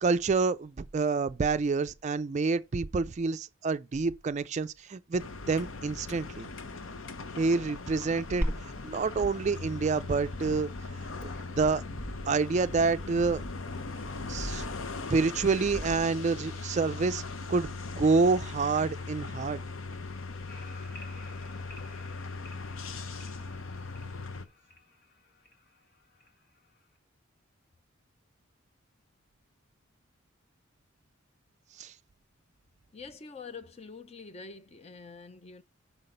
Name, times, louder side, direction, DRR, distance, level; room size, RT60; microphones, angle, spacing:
voice 1, 0.0-6.5 7.4-10.7 11.2-11.8 12.3-13.4 14.3-14.7 15.1-17.2 17.5-19.6 31.8-31.9, right 4 dB, 35° right, 0.3 m, -28 dB
sound 1, 5.2-24.5, left 3 dB, 75° left, 0.8 m, -39 dB
Glass, 8.4-16.4, equal, 10° right, 1.2 m, -40 dB
sound 2, 20.5-27.0, left 2 dB, 50° left, 1.7 m, -54 dB
voice 2, 32.9-35.6, left 4 dB, 30° left, 0.5 m, -45 dB
5.9 x 5.7 x 5.3 m
head